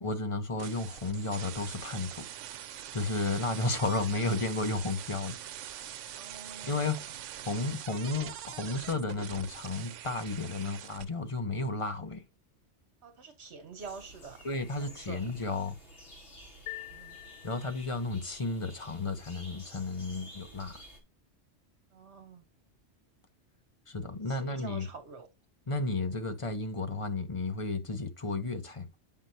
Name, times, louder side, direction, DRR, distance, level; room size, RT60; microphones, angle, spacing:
voice 1, 0.0-2.3 2.6-5.4 6.6-7.0 7.4-12.2 14.4-15.8 17.4-20.8 23.9-24.9 25.7-28.9, left 3 dB, 30° left, 0.9 m, -33 dB
sound 1, 0.6-11.0, right 11 dB, 85° right, 0.9 m, -43 dB
voice 2, 6.2-7.0 13.0-14.4 14.8-15.2 16.9-17.3 21.9-22.4 24.3-25.3, right 4 dB, 65° right, 1.2 m, -47 dB
sound 2, 13.8-21.0, equal, 50° left, 2.3 m, -52 dB
sound 3, 16.7-18.1, left 17 dB, 70° left, 1.1 m, -45 dB
7.9 x 5.5 x 2.7 m
omnidirectional pair, 1.2 m